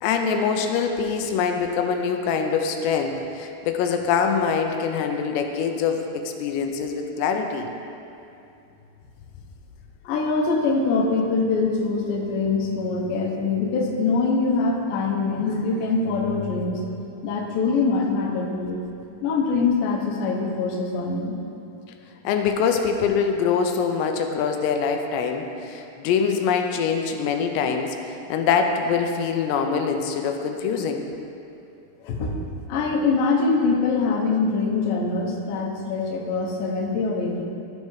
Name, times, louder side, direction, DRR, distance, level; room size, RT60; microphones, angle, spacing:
voice 1, 0.0-7.7 22.2-31.0, left 6 dB, 90° left, 4 dB, 2.8 m, -24 dB
voice 2, 10.0-16.8 17.2-18.8 19.2-21.3 32.0-32.4 32.7-37.4, left 4 dB, 75° left, -2 dB, 2.2 m, -23 dB
13.5 x 5.3 x 3.1 m, 2.7 s
omnidirectional pair, 4.9 m